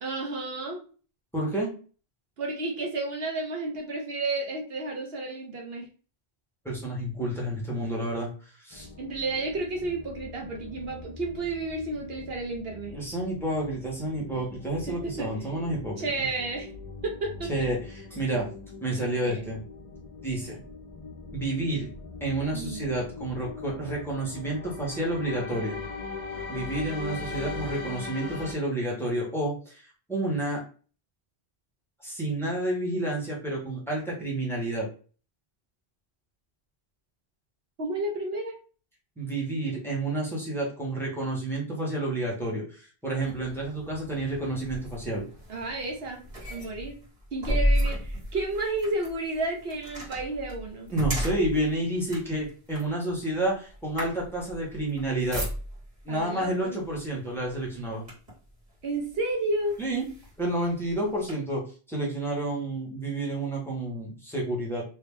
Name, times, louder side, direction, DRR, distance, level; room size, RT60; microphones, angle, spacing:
voice 1, 0.0-0.8 2.4-5.9 9.0-12.9 14.9-15.3 16.0-16.7 17.0-17.5 19.2-19.5 22.5-22.9 37.8-38.5 45.5-46.2 46.5-47.0 47.3-50.9 56.1-56.8 58.8-59.8, right 2 dB, 70° right, 1 dB, 1.0 m, -31 dB
voice 2, 1.3-1.7 6.6-8.3 8.6-8.9 12.9-16.1 17.5-18.4 18.8-19.6 20.2-20.6 21.3-21.9 22.2-25.8 26.5-30.6 32.0-34.9 39.2-45.2 50.9-55.4 56.0-58.1 59.8-60.1 60.4-61.6 61.9-64.8, right 1 dB, ahead, -4 dB, 1.2 m, -30 dB
sound 1, 8.7-28.5, left 4 dB, 35° left, 0.8 m, -41 dB
sound 2, 43.2-56.0 56.9-57.1 57.5-58.5 59.1-59.2 59.7-61.3, equal, 40° right, 1.9 m, -33 dB
3.0 x 2.8 x 3.6 m, 0.38 s
omnidirectional pair, 1.1 m